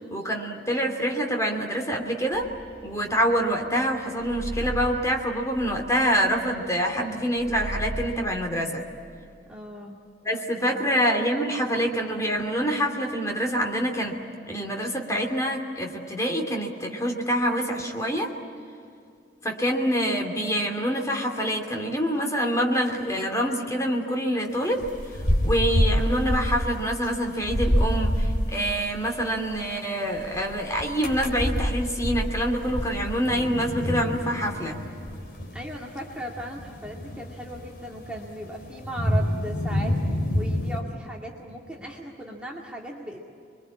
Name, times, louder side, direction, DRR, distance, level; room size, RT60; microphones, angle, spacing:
voice 1, 0.1-2.5 2.8-8.9 10.2-14.2 14.5-18.3 19.4-24.9 25.4-34.8, equal, 15° left, 2 dB, 2.8 m, -26 dB
sound 1, 2.3-3.8 4.2-7.1 7.4-8.3, right 1 dB, 35° right, 3.5 m, -36 dB
voice 2, 9.5-10.0 10.6-10.9 35.5-40.0 40.3-43.2, right 1 dB, 5° right, -2 dB, 2.1 m, -37 dB
sound 2, 24.6-28.6 29.4-29.6 30.1-40.8, equal, 55° left, 3.3 m, -27 dB
27.5 x 23.0 x 8.6 m, 2.5 s
head